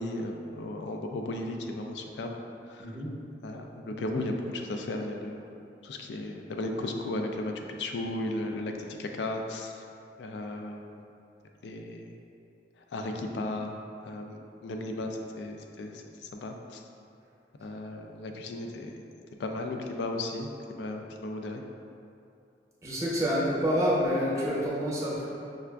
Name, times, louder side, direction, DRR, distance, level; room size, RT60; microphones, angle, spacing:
voice 1, 0.0-2.3 2.8-2.9 3.4-5.4 5.8-7.5 7.8-8.7 9.0-9.7 10.2-10.8 11.6-12.1 12.9-13.8 14.0-15.9 16.4-16.5 17.6-19.0 19.4-21.6, left 2 dB, 75° left, 3 dB, 0.3 m, -35 dB
voice 2, 2.8-3.1 22.8-25.2, equal, 15° right, -7 dB, 0.7 m, -27 dB
5.4 x 2.4 x 2.3 m, 2.6 s
head